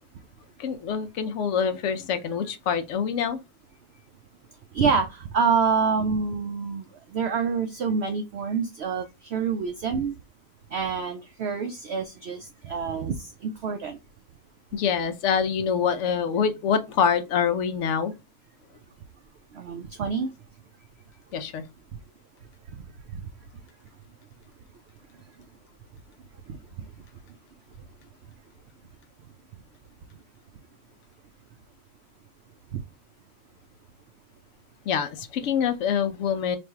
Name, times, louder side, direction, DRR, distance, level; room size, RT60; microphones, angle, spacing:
voice 1, 0.6-3.4 14.7-18.1 21.3-21.6 34.9-36.6, left 7 dB, 70° left, 0.7 m, -25 dB
voice 2, 4.7-6.8 7.1-10.2 10.7-14.0 19.5-20.3 23.1-23.2 26.5-26.6, right 5 dB, 80° right, 0.5 m, -27 dB
3.3 x 2.6 x 4.4 m
omnidirectional pair, 1.6 m